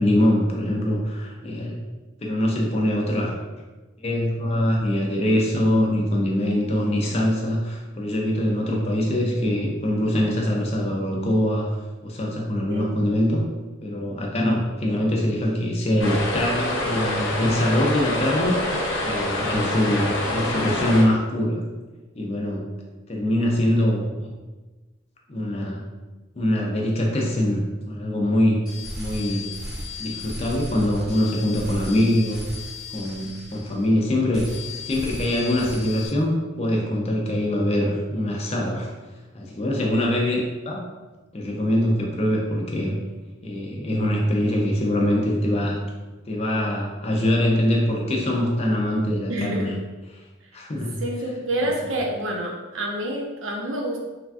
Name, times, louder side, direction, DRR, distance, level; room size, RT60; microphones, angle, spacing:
voice 1, 0.0-1.8 2.2-3.3 4.0-11.7 12.0-13.4 13.8-18.6 19.0-21.6 22.2-22.7 23.1-24.1 25.3-25.8 26.4-28.6 28.9-29.4 30.0-32.4 32.9-34.5 34.9-38.9 39.3-40.8 41.3-43.0 43.4-45.8 46.3-49.7 50.5-51.0, left 1 dB, 30° left, -1 dB, 0.4 m, -23 dB
sound 1, 16.0-21.0, left 1 dB, 75° left, 0.6 m, -26 dB
sound 2, 28.7-34.0 34.3-36.1, left 2 dB, 5° right, 0.8 m, -35 dB
voice 2, 49.3-49.7 50.4-50.6 51.0-54.0, right 1 dB, 75° right, 0 dB, 0.5 m, -28 dB
3.3 x 2.3 x 2.4 m, 1.2 s
head